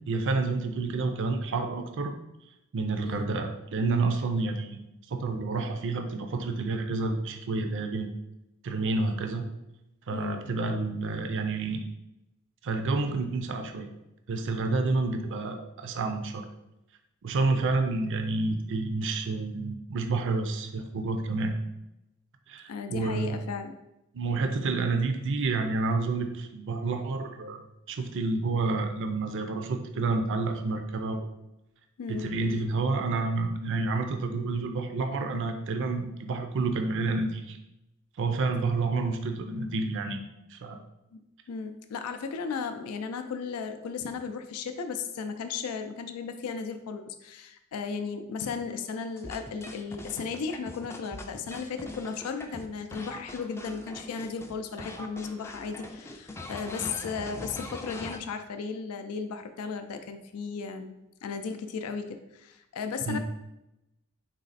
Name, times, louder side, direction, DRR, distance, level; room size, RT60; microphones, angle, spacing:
voice 1, 0.1-2.1 2.7-4.8 5.1-8.1 8.6-9.4 10.1-11.8 12.6-13.9 14.3-16.5 17.2-21.6 22.5-23.4 24.1-31.3 32.1-37.6 38.2-40.2 40.5-40.8 63.0-63.2, right 3 dB, 60° right, 6 dB, 0.5 m, -29 dB
voice 2, 10.1-10.4 22.7-23.7 32.0-32.3 41.5-60.9 61.2-63.2, left 5 dB, 85° left, 7 dB, 0.4 m, -35 dB
sound 1, 49.2-54.5 54.8-58.2, left 2 dB, 10° left, 0.3 m, -42 dB
4.0 x 3.2 x 4.0 m, 0.90 s
head